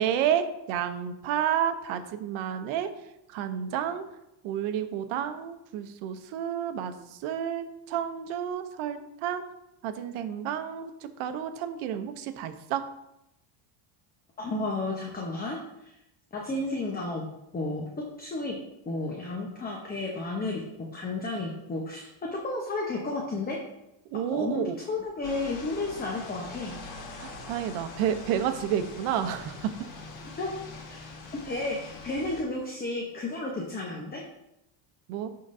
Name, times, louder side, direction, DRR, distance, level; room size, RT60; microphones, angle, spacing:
voice 1, 0.0-2.9 3.3-4.1 4.4-9.5 9.8-10.9 11.2-12.8 24.1-24.7 27.2-29.7 35.1-35.3, right 9 dB, 70° right, 9 dB, 0.8 m, -30 dB
voice 2, 14.4-15.9 16.3-17.2 17.5-17.9 18.2-18.5 18.9-20.6 20.9-23.6 24.3-26.8 30.4-30.5 31.4-34.2, left 2 dB, 20° left, -1 dB, 0.9 m, -32 dB
sound 1, 25.2-32.4, left 3 dB, 60° left, 1.8 m, -43 dB
11.5 x 3.9 x 2.6 m, 0.85 s
cardioid pair, 110°, 50 cm